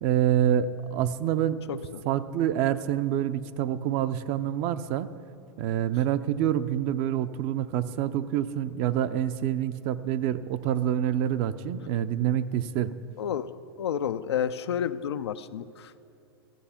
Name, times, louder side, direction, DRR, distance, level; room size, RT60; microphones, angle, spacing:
voice 1, 0.0-1.8 2.0-5.1 5.6-12.9, right 10 dB, 45° right, 13 dB, 0.5 m, -27 dB
voice 2, 1.7-2.0 13.2-16.1, left 8 dB, 85° left, 12 dB, 0.5 m, -31 dB
14.0 x 7.8 x 5.8 m, 2.5 s
hypercardioid pair, 115°, 13 cm